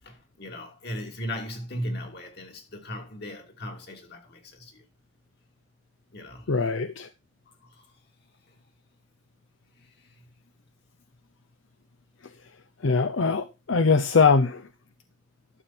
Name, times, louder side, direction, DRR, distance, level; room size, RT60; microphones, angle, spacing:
voice 1, 0.0-4.8 6.1-6.5 7.6-7.8, equal, 60° left, 3.0 m, -37 dB
voice 2, 6.5-7.1 12.8-14.6, left 4 dB, 85° left, 0.7 m, -22 dB
12.0 x 7.1 x 4.4 m
head